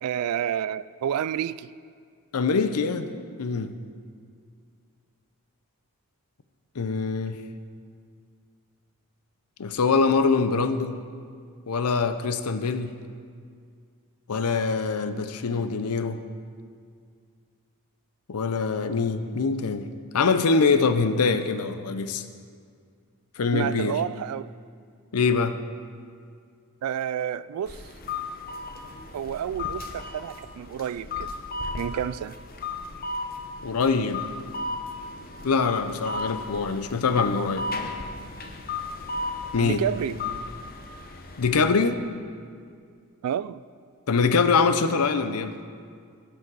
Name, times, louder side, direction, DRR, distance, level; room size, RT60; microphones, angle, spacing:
voice 1, 0.0-1.7 23.5-24.5 26.8-27.9 29.1-31.3 31.7-32.4 39.6-40.2 43.2-43.6, right 9 dB, 80° right, 17 dB, 0.3 m, -29 dB
voice 2, 2.3-3.1 3.4-3.7 6.8-7.4 9.6-11.0 11.7-12.9 14.3-16.2 18.3-19.9 20.1-22.2 23.4-24.0 25.1-25.5 33.6-34.2 35.4-37.7 39.5-39.8 41.4-42.0 44.1-45.5, left 4 dB, 80° left, 10 dB, 0.6 m, -24 dB
sound 1, 27.7-41.6, left 3 dB, 40° left, 0.8 m, -35 dB
16.0 x 6.2 x 4.7 m, 2.1 s
head